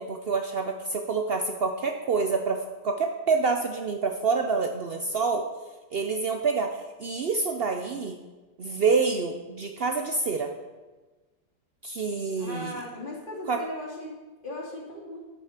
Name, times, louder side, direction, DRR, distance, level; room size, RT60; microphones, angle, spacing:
voice 1, 0.0-5.5 5.9-8.2 8.6-10.5 11.8-12.8 13.5-13.6, right 4 dB, 90° right, 5 dB, 0.5 m, -27 dB
voice 2, 12.4-14.1 14.4-15.2, left 1 dB, 25° left, -4 dB, 3.0 m, -37 dB
9.2 x 8.1 x 6.6 m, 1.2 s
omnidirectional pair, 2.0 m